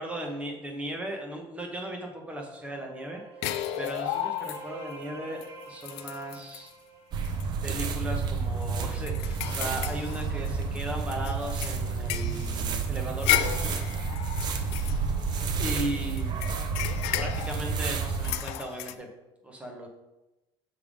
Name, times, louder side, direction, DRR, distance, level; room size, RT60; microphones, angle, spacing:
voice 1, 0.0-3.2 3.8-6.7 7.6-13.8 15.6-16.3 17.2-19.1 19.4-19.9, right 1 dB, 10° right, 1 dB, 1.1 m, -37 dB
sound 1, 2.3-7.9, right 3 dB, 60° right, 1.3 m, -46 dB
sound 2, 3.4-4.9 5.4-5.5 5.8-6.7 7.2-7.4 7.8-7.9 8.4-10.8 11.2-15.7 16.2-18.9, left 13 dB, 80° left, 0.4 m, -33 dB
sound 3, 7.1-18.3, right 5 dB, 45° right, 0.6 m, -30 dB
6.9 x 3.5 x 5.0 m, 1.0 s
cardioid pair, 140°, 11 cm